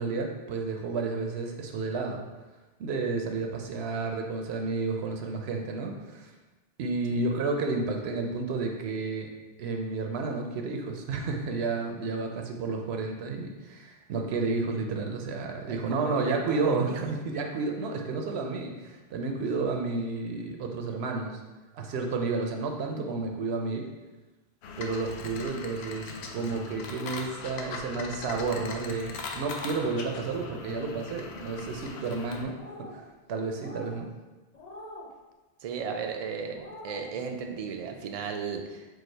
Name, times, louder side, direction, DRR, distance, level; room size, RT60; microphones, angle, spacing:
voice 1, 0.0-2.2 2.8-6.3 6.8-9.3 9.6-21.4 21.7-23.9 24.8-32.6 32.9-33.0 33.3-34.1, right 3 dB, 75° right, 3 dB, 0.8 m, -31 dB
voice 2, 15.7-17.1 35.6-38.9, right 6 dB, 60° right, 4 dB, 0.4 m, -35 dB
sound 1, 24.6-32.4, left 4 dB, 80° left, 0.8 m, -40 dB
sound 2, 32.5-33.0 33.5-34.0 34.5-35.1 35.7-36.0 36.5-37.1, left 1 dB, 45° left, 0.7 m, -45 dB
4.7 x 2.3 x 4.4 m, 1.2 s
omnidirectional pair, 1.1 m